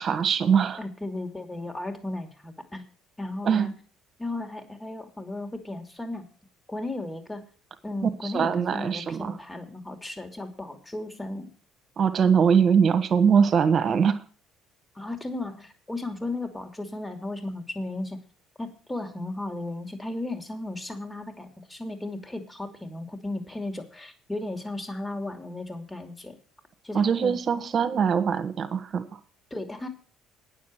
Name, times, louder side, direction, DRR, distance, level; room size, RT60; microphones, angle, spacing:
voice 1, 0.0-0.8 3.4-3.7 8.0-9.3 12.0-14.2 26.9-29.0, right 7 dB, 45° right, 9 dB, 1.7 m, -22 dB
voice 2, 0.8-2.8 3.2-3.7 4.2-6.3 6.7-7.4 7.8-11.5 14.9-18.2 18.6-26.4 26.8-27.3 29.5-29.9, left 2 dB, 15° left, 6 dB, 2.9 m, -35 dB
9.5 x 7.4 x 7.7 m, 0.38 s
hypercardioid pair, 70°, 0 cm